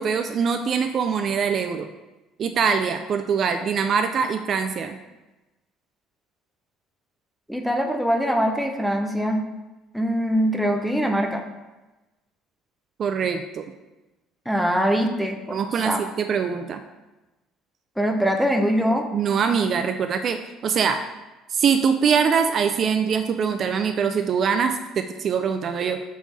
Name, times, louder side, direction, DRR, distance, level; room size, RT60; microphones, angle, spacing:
voice 1, 0.0-1.9 2.4-5.0 13.0-13.6 15.5-16.8 19.1-21.0 21.5-26.0, right 6 dB, 45° right, 8 dB, 0.3 m, -23 dB
voice 2, 7.5-9.4 9.9-11.4 14.5-16.0 18.0-19.0, equal, ahead, 2 dB, 0.6 m, -23 dB
5.3 x 3.2 x 5.5 m, 1.1 s
cardioid pair, 125°, 0 cm